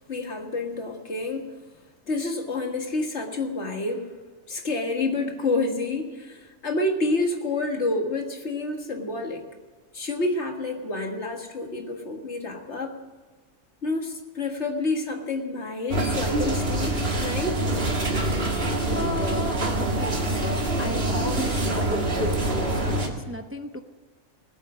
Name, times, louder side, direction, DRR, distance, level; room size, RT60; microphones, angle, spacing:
voice 1, 0.0-1.5 2.1-4.1 4.5-9.5 9.9-13.0 13.8-17.6, left 2 dB, 60° left, 3 dB, 2.0 m, -28 dB
sound 1, 15.9-23.1, right 1 dB, 50° right, 1.9 m, -25 dB
voice 2, 18.9-22.7 23.3-23.8, left 1 dB, 15° right, 6 dB, 0.6 m, -35 dB
19.5 x 8.2 x 6.2 m, 1.3 s
omnidirectional pair, 1.4 m